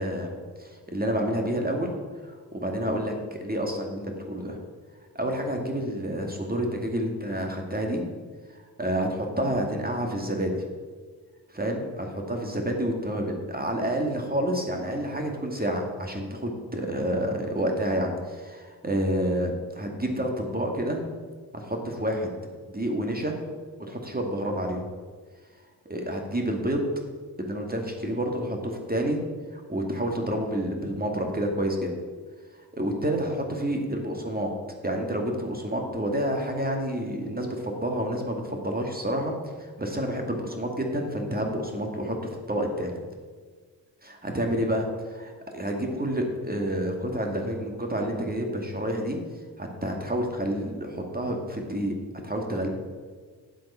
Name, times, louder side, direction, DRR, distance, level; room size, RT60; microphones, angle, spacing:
voice 1, 0.0-1.9 2.2-4.6 5.1-8.0 8.5-10.6 11.5-21.0 21.5-22.3 22.7-23.4 23.8-24.9 25.9-26.9 27.4-29.2 29.5-31.9 32.7-34.5 34.8-42.9 44.0-44.9 45.1-49.2 49.6-51.9 52.2-52.7, equal, 25° right, 2 dB, 2.2 m, -29 dB
10.0 x 7.5 x 5.6 m, 1.5 s
cardioid pair, 50°, 39 cm